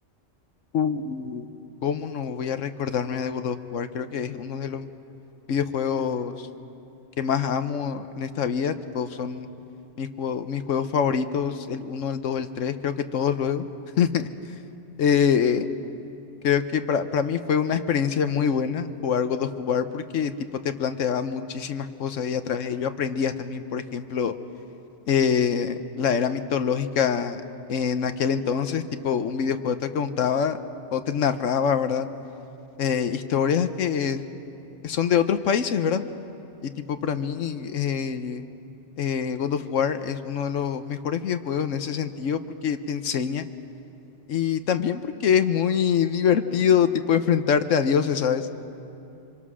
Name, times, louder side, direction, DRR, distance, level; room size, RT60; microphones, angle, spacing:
voice 1, 0.7-1.5 1.8-4.9 5.5-6.5 7.2-9.5 10.0-13.6 14.0-14.3 15.0-15.6 16.4-20.3 20.6-24.3 25.1-27.4 27.7-30.6 30.9-32.1 32.8-34.3 34.8-36.0 36.6-38.4 39.0-43.5 44.3-48.5, left 7 dB, 85° left, 9 dB, 1.2 m, -25 dB
27.0 x 25.0 x 6.3 m, 2.8 s
omnidirectional pair, 1.3 m